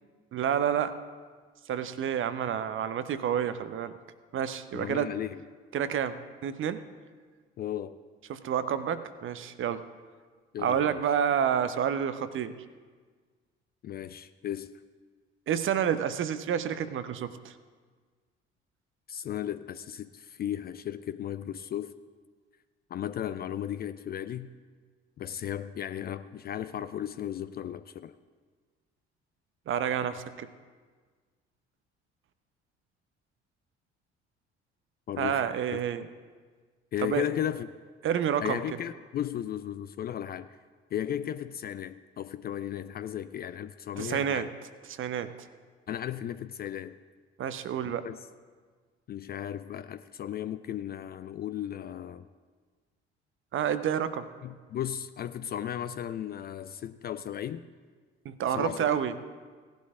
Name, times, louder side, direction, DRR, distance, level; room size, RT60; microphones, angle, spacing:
voice 1, 0.3-0.9 1.7-3.9 4.3-5.1 5.7-6.8 8.3-9.8 10.6-12.5 15.5-17.5 29.7-30.5 35.2-36.1 37.0-37.2 38.0-38.6 44.0-44.5 44.9-45.3 47.4-48.1 53.5-54.3 58.2-59.1, right 8 dB, 40° right, 12 dB, 0.7 m, -29 dB
voice 2, 4.7-5.4 7.6-8.0 10.5-11.0 13.8-14.7 19.1-21.9 22.9-24.5 25.2-28.1 35.1-35.4 35.7-35.8 36.9-37.7 38.4-40.5 40.9-44.5 45.9-46.9 47.8-48.2 49.1-52.3 54.4-57.7 58.5-58.9, left 10 dB, 30° left, 13 dB, 0.4 m, -35 dB
18.0 x 11.5 x 2.4 m, 1.5 s
figure-of-eight pair, 50°, 32 cm